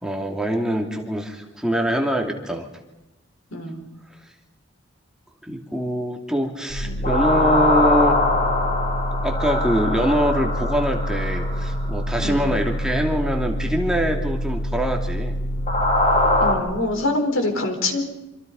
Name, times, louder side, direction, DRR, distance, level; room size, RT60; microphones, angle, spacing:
voice 1, 0.0-2.6 5.5-8.1 9.2-15.4, equal, 5° right, 1 dB, 2.7 m, -24 dB
voice 2, 3.5-3.8 6.8-7.1 12.2-12.4 16.4-18.0, left 2 dB, 90° left, 5 dB, 4.8 m, -25 dB
sound 1, 6.7-16.5, left 1 dB, 40° left, 5.5 m, -22 dB
26.5 x 26.5 x 5.4 m, 1.0 s
head